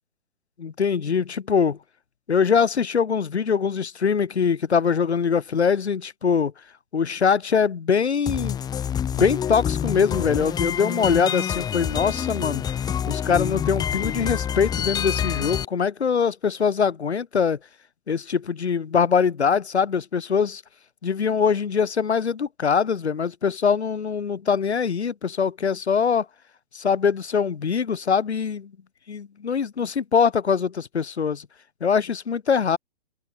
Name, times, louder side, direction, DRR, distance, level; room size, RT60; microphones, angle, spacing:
voice 1, 0.6-1.8 2.3-6.5 6.9-8.6 9.1-12.6 13.1-17.6 18.1-20.6 21.0-26.3 26.7-28.7 29.1-31.5 31.8-32.8, left 6 dB, 85° left, 4.9 m, -23 dB
sound 1, 8.3-15.6, left 9 dB, 10° left, 4.4 m, -27 dB
hypercardioid pair, 155°, 32 cm